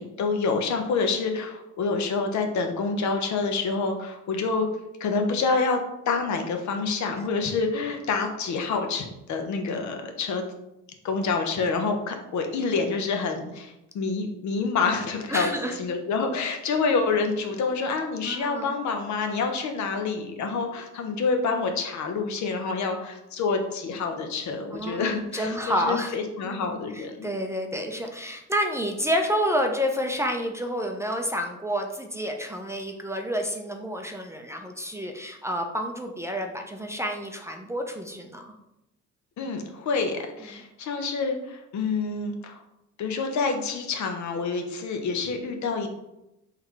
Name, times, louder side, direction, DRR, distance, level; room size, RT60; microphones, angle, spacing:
voice 1, 0.0-4.7 5.0-5.8 6.1-10.5 11.0-15.5 15.8-27.3 39.4-42.6 43.0-45.9, left 4 dB, 70° left, 5 dB, 0.7 m, -27 dB
voice 2, 15.3-15.8 18.2-18.7 24.7-26.1 26.4-38.5 40.5-40.6, equal, 10° right, 3 dB, 0.4 m, -29 dB
3.8 x 3.2 x 3.1 m, 0.89 s
cardioid pair, 90°, 30 cm